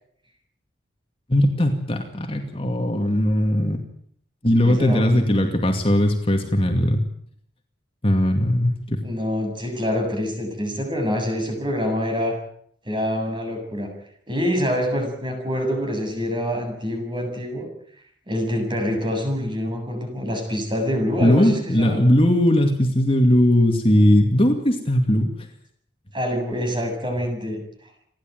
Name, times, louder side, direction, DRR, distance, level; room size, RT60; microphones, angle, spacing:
voice 1, 1.3-3.8 4.4-7.0 8.0-9.0 21.2-25.3, left 1 dB, 30° left, 4 dB, 2.4 m, -19 dB
voice 2, 4.6-5.5 9.0-12.4 12.9-13.9 14.3-17.7 18.3-22.0 26.1-27.6, equal, 25° right, 3 dB, 7.4 m, -26 dB
30.0 x 11.5 x 9.3 m, 0.67 s
head